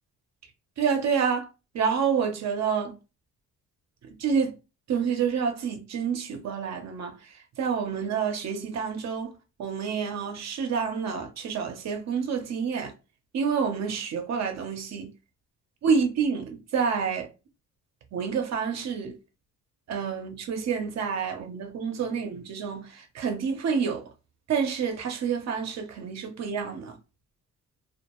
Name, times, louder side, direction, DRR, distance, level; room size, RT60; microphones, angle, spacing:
voice 1, 0.8-1.5 1.7-2.9 4.2-4.6 4.9-7.1 7.6-9.3 9.6-12.9 13.3-15.1 15.8-17.3 18.1-19.2 19.9-24.0 24.5-27.0, right 6 dB, 60° right, 0.7 m, -28 dB
2.4 x 2.2 x 2.9 m
cardioid pair, 90°, 30 cm